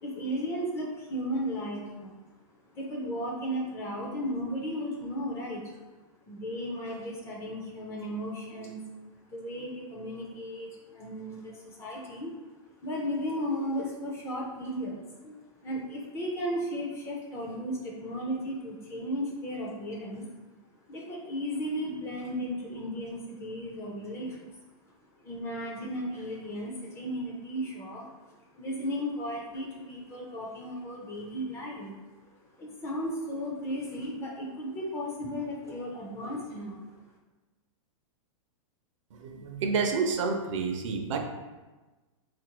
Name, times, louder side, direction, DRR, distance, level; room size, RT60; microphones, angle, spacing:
voice 1, 0.0-2.1 2.7-5.6 6.3-8.8 9.3-12.5 12.8-20.3 20.9-24.5 25.2-28.1 28.5-31.9 32.6-36.8, equal, 15° left, -2 dB, 0.4 m, -35 dB
voice 2, 39.1-41.2, right 5 dB, 65° right, 4 dB, 0.5 m, -29 dB
3.8 x 2.5 x 2.9 m, 1.2 s
supercardioid pair, 155°, 18 cm